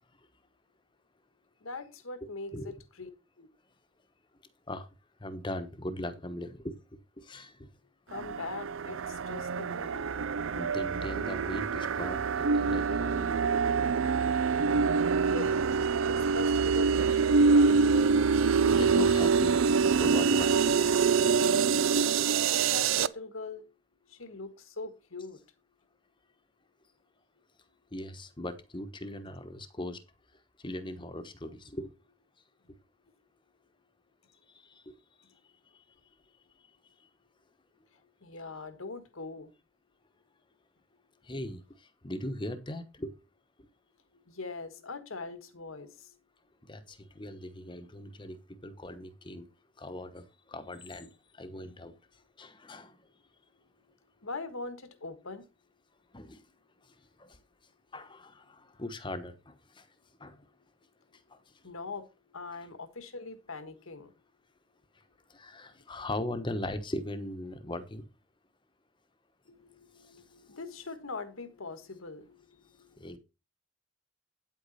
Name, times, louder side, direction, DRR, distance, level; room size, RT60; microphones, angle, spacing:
voice 1, 1.6-3.1 3.4-3.5 8.1-10.1 15.3-15.7 16.1-18.1 22.4-23.7 24.0-25.4 38.2-39.5 44.1-46.2 54.2-55.4 61.6-64.1 69.5-73.2, left 3 dB, 85° left, 1.5 m, -42 dB
voice 2, 5.2-6.8 7.2-7.7 10.5-13.5 18.7-20.8 27.9-30.0 30.6-31.9 34.5-34.9 41.2-43.1 43.6-43.7 46.7-49.5 49.8-51.9 52.4-53.0 56.1-56.4 57.2-57.4 57.9-59.9 60.2-60.4 61.3-61.4 65.3-68.1 73.0-73.2, left 1 dB, 25° left, 1.0 m, -39 dB
sound 1, 8.1-23.1, right 5 dB, 75° right, 0.5 m, -25 dB
9.4 x 8.3 x 4.1 m
head